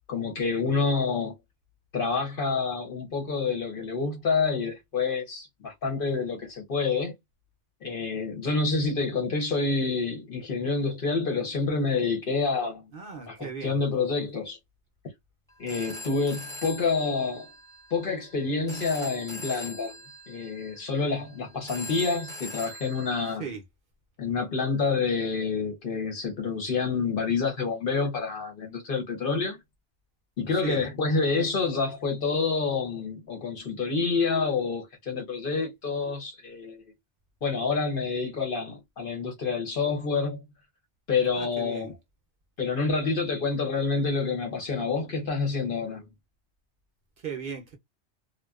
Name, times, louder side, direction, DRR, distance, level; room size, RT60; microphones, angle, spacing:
voice 1, 0.1-1.3 1.9-7.1 7.8-12.9 13.3-14.6 15.6-17.5 17.9-20.0 20.3-23.4 24.2-29.6 30.4-36.8 37.4-40.4 41.1-41.9 42.6-46.0, left 4 dB, 55° left, 0.9 m, -28 dB
voice 2, 12.9-13.8 23.4-23.6 30.5-30.8 41.3-41.9 47.2-47.8, right 6 dB, 60° right, 0.7 m, -37 dB
Telephone, 15.5-23.3, left 1 dB, 5° left, 0.9 m, -43 dB
2.5 x 2.2 x 2.3 m
omnidirectional pair, 1.2 m